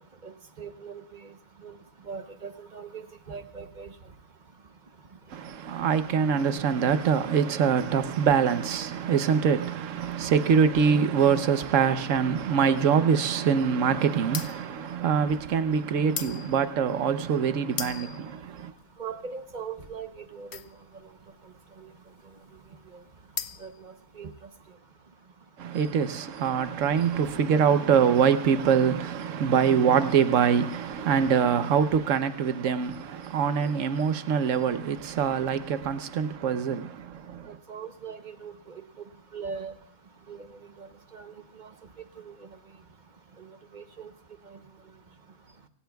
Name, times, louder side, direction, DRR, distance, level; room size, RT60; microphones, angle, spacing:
voice 1, 0.2-1.3 1.6-1.7 2.1-3.9 19.0-20.5 21.8-21.9 23.6-24.3 37.7-38.8 39.3-39.7 40.3-40.5 40.8-41.3 41.6-41.7 42.2-42.3 43.4-43.5 43.7-44.1 44.5-44.6, right 6 dB, 35° right, 0.9 m, -40 dB
voice 2, 5.3-18.7 25.6-37.5, right 7 dB, 60° right, 1.1 m, -24 dB
sound 1, 14.2-24.6, left 8 dB, 55° left, 0.8 m, -40 dB
27.5 x 17.0 x 2.3 m
omnidirectional pair, 1.6 m